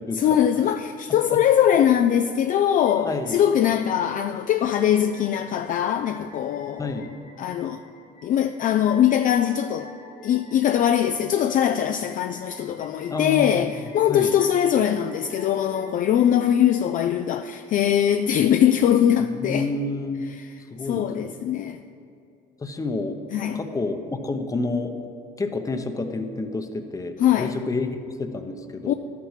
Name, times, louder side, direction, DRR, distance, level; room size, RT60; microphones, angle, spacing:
voice 1, 0.1-7.0 7.4-7.8 8.2-9.9 10.2-19.7 20.3-20.5 20.9-21.8 23.3-23.6 27.2-27.5 28.9-29.0, left 10 dB, 45° left, 0.4 m, -21 dB
sound 1, 2.7-17.0, left 2 dB, 65° left, 2.5 m, -48 dB
voice 2, 3.1-3.4 6.8-7.1 13.1-13.7 14.1-14.4 19.3-20.3 20.7-21.3 22.6-23.2 23.5-24.9 25.4-28.9, left 3 dB, 15° left, 0.8 m, -29 dB
12.5 x 6.0 x 5.7 m
cardioid pair, 120°, 19 cm